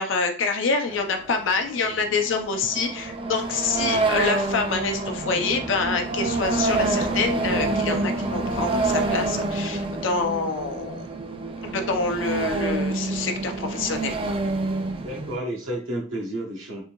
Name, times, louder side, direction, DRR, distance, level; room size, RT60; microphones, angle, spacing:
voice 1, 0.0-11.0 11.6-14.4, left 4 dB, 70° left, 4 dB, 0.6 m, -26 dB
sound 1, 0.9-15.4, right 3 dB, 25° right, 0.4 m, -27 dB
sound 2, 4.5-10.9, left 1 dB, 20° left, 0.6 m, -43 dB
voice 2, 15.0-16.8, right 1 dB, 85° right, -2 dB, 1.0 m, -31 dB
3.6 x 2.6 x 2.9 m, 0.40 s
head